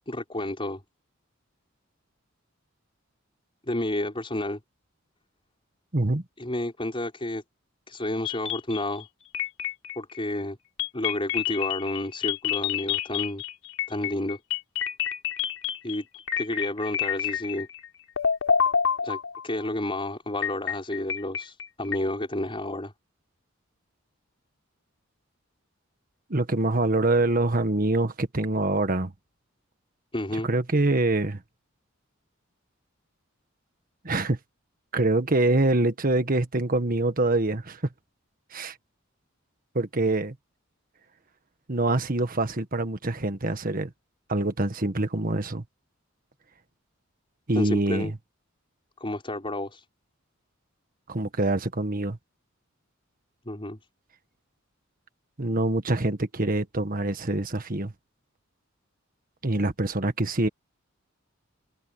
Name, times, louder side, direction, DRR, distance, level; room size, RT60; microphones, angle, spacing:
voice 1, 0.1-0.8 3.6-4.6 6.4-7.4 7.9-9.1 10.0-10.6 10.9-13.4 13.9-14.4 15.8-16.1 16.4-17.7 19.0-19.2 19.4-22.9 30.1-30.5 47.6-48.1 49.0-49.8 53.5-53.8, left 1 dB, 25° left, 5.5 m, -30 dB
voice 2, 5.9-6.2 26.3-29.1 30.4-31.4 34.0-34.4 34.9-37.8 38.5-38.8 39.7-40.3 41.7-43.9 44.3-45.6 47.5-48.2 51.1-52.2 55.4-57.9 59.4-60.5, right 2 dB, 45° right, 1.6 m, -25 dB
sound 1, 8.2-9.0 9.3-10.2 10.8-17.9 18.2-19.6 20.4-22.0, left 8 dB, 75° left, 6.0 m, -28 dB
head